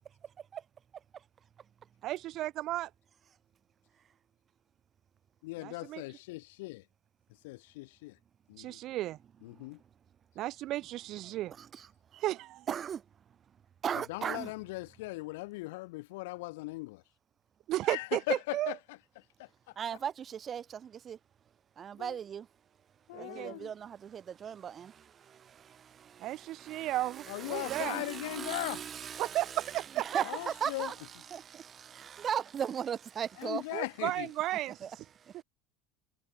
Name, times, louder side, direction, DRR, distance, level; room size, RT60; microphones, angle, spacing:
voice 1, 2.0-2.9 5.9-6.0 8.6-9.2 10.4-11.5 12.1-12.7 17.7-18.7 23.1-23.6 26.2-28.0 29.2-30.2 33.7-35.0, right 15 dB, 55° right, 0.9 m, -34 dB
voice 2, 5.4-6.8 7.3-8.2 8.5-8.8 9.4-9.8 13.9-17.0 17.9-19.7 22.0-22.2 23.1-23.7 27.3-28.8 30.2-30.9 33.4-34.3, left 22 dB, 75° left, 4.1 m, -39 dB
voice 3, 11.3-11.9 12.7-13.0 13.8-14.5 19.8-21.2 21.8-22.5 23.2-33.6 34.8-34.9 35.2-35.4, right 8 dB, 35° right, 2.0 m, -38 dB
hypercardioid pair, 85°, 0 cm